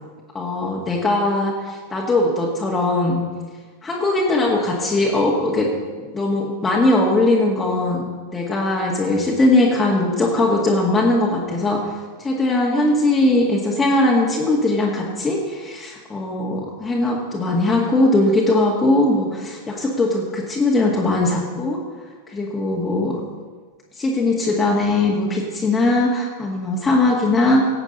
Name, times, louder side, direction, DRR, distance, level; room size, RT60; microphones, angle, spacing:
voice 1, 0.3-3.2 3.8-5.7 6.1-8.0 8.3-11.9 12.2-21.8 22.3-23.2 24.0-27.6, left 2 dB, 15° left, -3 dB, 1.9 m, -20 dB
17.5 x 8.1 x 5.4 m, 1.4 s
figure-of-eight pair, 90°, 0 cm